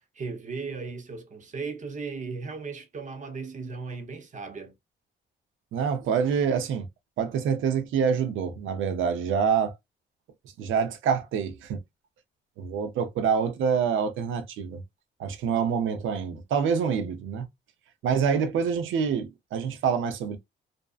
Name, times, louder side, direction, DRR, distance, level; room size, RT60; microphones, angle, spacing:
voice 1, 0.0-4.7, right 4 dB, 40° right, 0.7 m, -36 dB
voice 2, 5.7-6.9 7.2-9.7 10.6-11.8 12.6-14.8 15.2-17.5 18.0-20.4, right 6 dB, 80° right, 0.6 m, -26 dB
2.5 x 2.2 x 2.3 m
cardioid pair, 90°, 20 cm